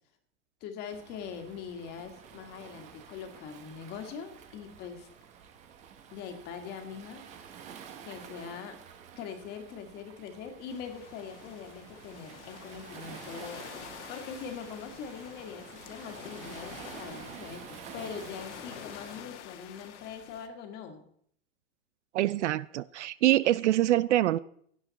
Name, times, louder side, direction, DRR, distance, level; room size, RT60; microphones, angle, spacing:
voice 1, 0.6-5.1 6.1-7.2 8.0-8.8 9.2-13.6 14.1-21.0, left 7 dB, 25° left, 6 dB, 1.9 m, -42 dB
Waves surf, 0.9-19.2, right 7 dB, 20° right, 1.0 m, -49 dB
sound 1, 10.7-20.5, left 10 dB, 60° left, 1.7 m, -48 dB
voice 2, 22.1-24.4, right 14 dB, 65° right, 19 dB, 0.6 m, -25 dB
17.0 x 11.0 x 4.1 m, 0.64 s
supercardioid pair, 165°, 39 cm